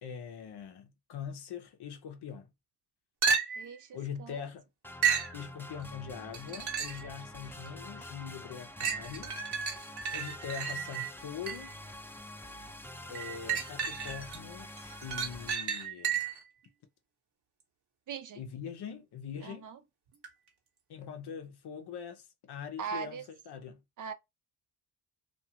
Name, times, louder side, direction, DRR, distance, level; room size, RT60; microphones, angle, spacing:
voice 1, 0.0-2.5 3.9-4.6 5.3-9.3 10.1-11.7 13.1-14.7 15.0-16.2 18.4-19.7 20.9-23.8, left 7 dB, 60° left, 0.8 m, -42 dB
sound 1, 3.2-3.8 5.0-5.4 6.3-7.1 7.7-7.8 8.8-11.8 13.1-14.4 14.8-16.5 20.2-20.3, right 7 dB, 60° right, 1.2 m, -32 dB
voice 2, 3.6-4.4 18.1-18.4 19.4-19.8 22.8-23.2 24.0-24.1, right 7 dB, 45° right, 0.5 m, -40 dB
sound 2, 4.8-15.5, left 1 dB, 5° left, 0.4 m, -46 dB
2.6 x 2.4 x 2.8 m
supercardioid pair, 65°, 44 cm